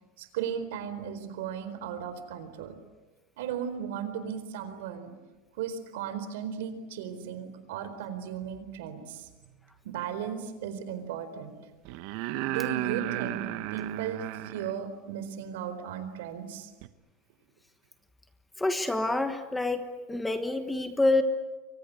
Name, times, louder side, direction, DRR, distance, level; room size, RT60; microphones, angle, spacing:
voice 1, 0.2-2.7 3.4-5.1 5.6-9.3 9.8-11.6 12.1-13.4 13.7-16.7, right 8 dB, 75° right, 10 dB, 4.3 m, -36 dB
sound 1, 10.0-10.1 11.8-14.7 16.8-16.9, right 15 dB, 50° right, 1.2 m, -34 dB
voice 2, 18.6-19.8 20.1-21.2, left 2 dB, 5° left, 8 dB, 1.2 m, -27 dB
29.5 x 24.0 x 8.3 m, 1.1 s
supercardioid pair, 180°, 0 cm